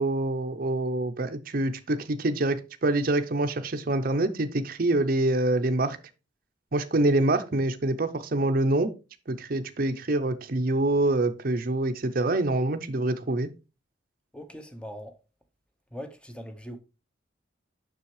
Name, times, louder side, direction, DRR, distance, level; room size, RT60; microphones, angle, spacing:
voice 1, 0.0-6.0 6.7-8.9 9.3-13.5, right 2 dB, 45° right, 0.6 m, -26 dB
voice 2, 14.3-15.2 15.9-16.8, equal, 5° left, 0.8 m, -41 dB
7.1 x 6.2 x 3.2 m
head